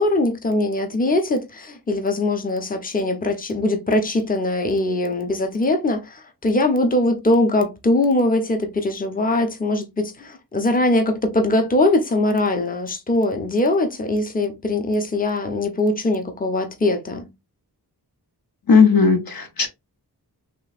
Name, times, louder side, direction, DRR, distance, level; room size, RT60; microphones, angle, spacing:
voice 1, 0.0-17.3, left 2 dB, 20° left, 0.7 m, -21 dB
voice 2, 18.7-19.7, left 5 dB, 60° left, 0.7 m, -15 dB
3.0 x 3.0 x 2.4 m
wide cardioid pair, 50°, 40 cm